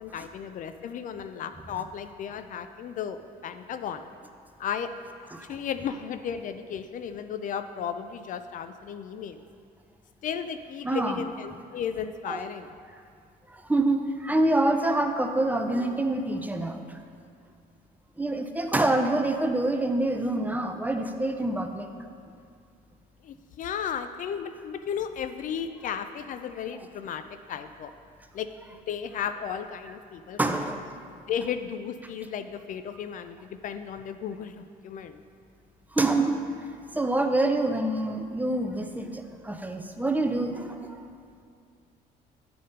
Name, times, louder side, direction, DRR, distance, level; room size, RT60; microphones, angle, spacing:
voice 1, 0.0-4.1 4.6-4.9 5.5-9.4 10.2-12.7 23.2-27.9 28.3-30.4 31.3-35.2, left 8 dB, 50° left, 10 dB, 0.4 m, -34 dB
voice 2, 10.8-11.2 12.3-12.4 13.5-16.8 18.2-22.1 30.4-30.8 35.9-36.4 36.9-41.0, right 2 dB, 10° right, 5 dB, 0.5 m, -26 dB
10.0 x 4.2 x 5.2 m, 2.3 s
cardioid pair, 110°, 17 cm